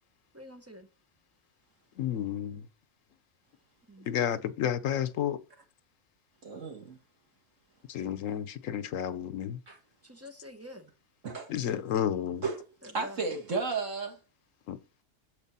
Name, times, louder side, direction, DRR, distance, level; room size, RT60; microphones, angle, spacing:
voice 1, 0.3-0.9 3.9-4.1 10.0-10.9 12.8-13.2, left 1 dB, 15° right, 0.8 m, -47 dB
voice 2, 2.0-2.6 4.1-5.4 7.9-9.6 11.5-12.4 14.7-14.8, left 9 dB, 80° left, 1.1 m, -31 dB
voice 3, 6.4-7.0 9.7-9.8 11.2-11.5 12.4-12.6 12.8-14.2, right 4 dB, 70° right, 2.2 m, -33 dB
7.3 x 5.1 x 5.5 m
omnidirectional pair, 1.3 m